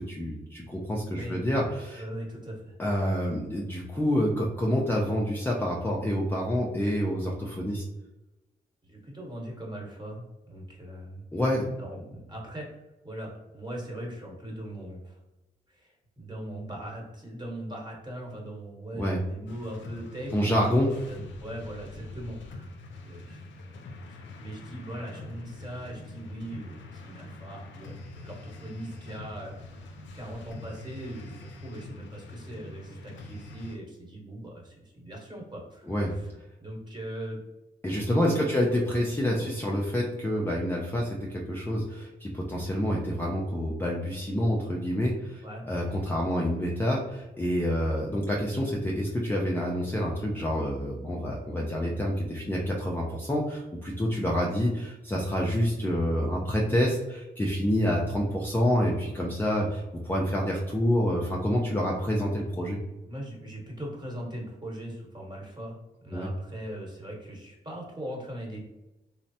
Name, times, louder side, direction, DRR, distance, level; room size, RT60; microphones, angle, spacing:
voice 1, 0.0-2.0 2.8-7.8 11.3-11.7 18.9-19.2 20.3-20.9 35.9-36.1 37.8-62.8 66.1-66.3, equal, 10° left, -3 dB, 0.4 m, -27 dB
voice 2, 1.9-2.7 8.8-11.2 11.7-12.8 13.0-15.2 15.7-22.7 23.0-23.4 23.7-23.8 24.1-29.9 30.1-36.3 36.6-37.4 38.2-38.6 39.3-39.5 45.4-45.6 63.0-65.8 66.0-68.7, right 1 dB, 25° right, -3 dB, 1.2 m, -40 dB
sound 1, 19.5-33.8, left 2 dB, 80° left, 0.4 m, -44 dB
3.1 x 2.0 x 2.7 m, 1.0 s
cardioid pair, 65°, 19 cm